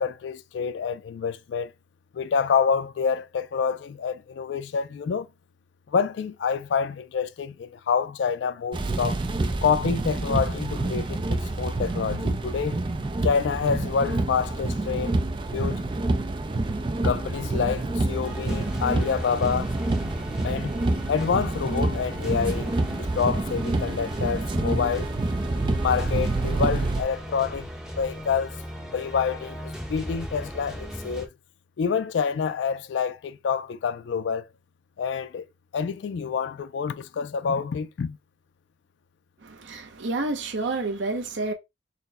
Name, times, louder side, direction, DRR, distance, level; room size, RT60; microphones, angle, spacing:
voice 1, 0.0-1.7 2.1-5.3 5.9-9.2 9.6-12.8 13.2-15.1 15.5-15.8 17.0-19.7 20.4-20.7 21.1-25.1 25.8-27.7 28.0-28.6 28.9-31.3 31.8-34.5 35.0-35.5 35.7-38.2, left 6 dB, 70° left, 0.3 m, -27 dB
sound 1, 8.7-27.0, right 2 dB, 25° right, 0.4 m, -27 dB
sound 2, 18.2-31.3, equal, 5° right, 0.8 m, -37 dB
voice 2, 39.4-41.5, right 2 dB, 75° right, 0.7 m, -29 dB
4.3 x 2.1 x 3.9 m
head